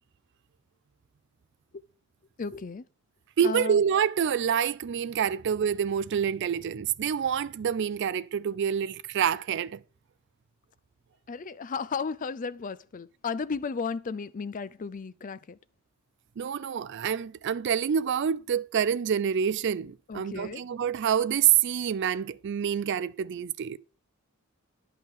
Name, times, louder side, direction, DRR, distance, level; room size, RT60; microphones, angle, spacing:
voice 1, 2.4-2.8 3.4-3.8 11.3-15.6 20.1-20.6, left 5 dB, 40° left, 0.4 m, -34 dB
voice 2, 3.4-9.8 16.4-23.8, right 8 dB, 55° right, 0.4 m, -27 dB
10.5 x 5.6 x 3.6 m
head